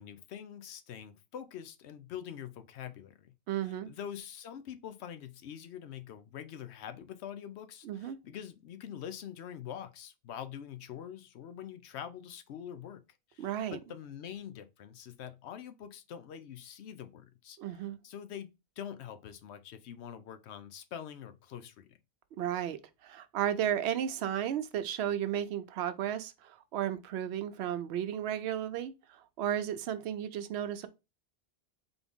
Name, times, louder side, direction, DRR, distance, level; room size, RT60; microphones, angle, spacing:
voice 1, 0.0-3.3 3.6-13.0 13.3-22.0, left 9 dB, 80° left, 0.9 m, -45 dB
voice 2, 3.5-3.9 7.8-8.2 13.4-13.8 17.6-18.0 22.4-30.9, right 10 dB, 80° right, 0.8 m, -34 dB
3.9 x 3.6 x 3.5 m
omnidirectional pair, 1.1 m